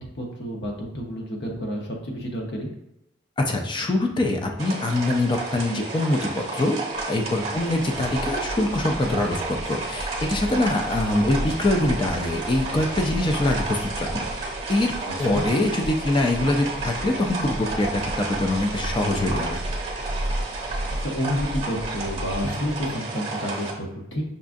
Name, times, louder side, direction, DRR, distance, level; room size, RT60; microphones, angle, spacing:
voice 1, 0.0-2.7 7.5-7.6 15.1-15.4 21.0-24.2, equal, 65° left, 0 dB, 0.8 m, -30 dB
voice 2, 3.4-6.8 7.0-14.9 15.2-19.6, left 2 dB, 25° left, 2 dB, 0.4 m, -24 dB
sound 1, 4.6-23.7, right 3 dB, 30° right, 0.9 m, -32 dB
sound 2, 7.0-22.9, equal, 70° right, 0.4 m, -34 dB
5.4 x 2.4 x 2.5 m, 0.84 s
head